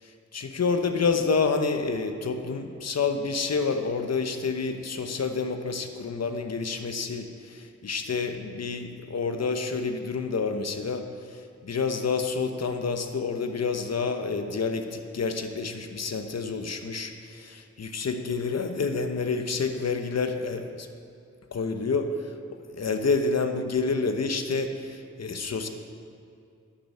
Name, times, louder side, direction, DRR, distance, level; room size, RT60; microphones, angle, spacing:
voice 1, 0.3-11.0 11.3-20.9 21.5-22.1 22.7-25.7, left 4 dB, 60° left, 6 dB, 1.0 m, -28 dB
10.0 x 6.1 x 8.4 m, 2.4 s
cardioid pair, 45°, 29 cm